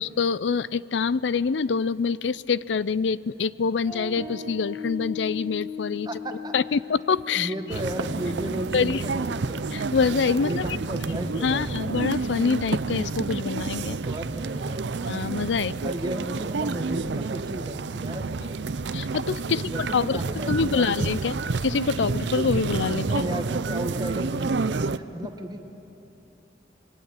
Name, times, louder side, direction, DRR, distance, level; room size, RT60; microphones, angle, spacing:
voice 1, 0.0-6.1 6.5-7.5 8.7-9.0 9.7-10.7 11.4-14.0 15.1-15.7 18.9-20.2 20.5-21.4 21.6-23.2, left 5 dB, 85° left, 19 dB, 0.5 m, -25 dB
sound 1, 3.8-10.7, left 6 dB, 10° left, 5.1 m, -39 dB
voice 2, 6.0-6.5 7.3-9.6 10.4-11.8 14.0-14.8 15.8-18.5 19.5-21.3 23.0-25.6, right 1 dB, 25° right, 5 dB, 1.5 m, -34 dB
sound 2, 7.7-25.0, right 3 dB, 75° right, 0.6 m, -29 dB
27.0 x 22.5 x 8.9 m, 2.9 s
head